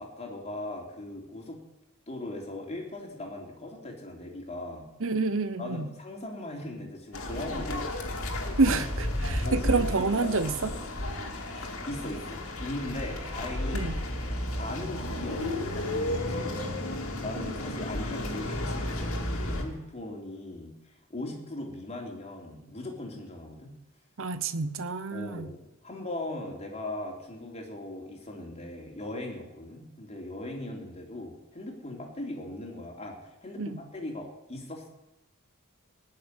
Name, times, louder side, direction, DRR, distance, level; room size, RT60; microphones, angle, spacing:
voice 1, 0.0-1.6 2.1-4.9 5.6-8.8 9.3-10.4 11.5-14.0 14.6-16.5 16.9-23.7 25.1-34.9, left 1 dB, 30° left, 0 dB, 3.5 m, -39 dB
voice 2, 5.0-5.9 8.6-8.9 9.2-10.7 13.7-13.9 24.2-25.5 33.6-33.8, right 3 dB, 65° right, 12 dB, 0.9 m, -28 dB
sound 1, 7.1-19.6, left 1 dB, 70° left, 2.8 m, -32 dB
18.5 x 6.8 x 10.0 m, 0.95 s
head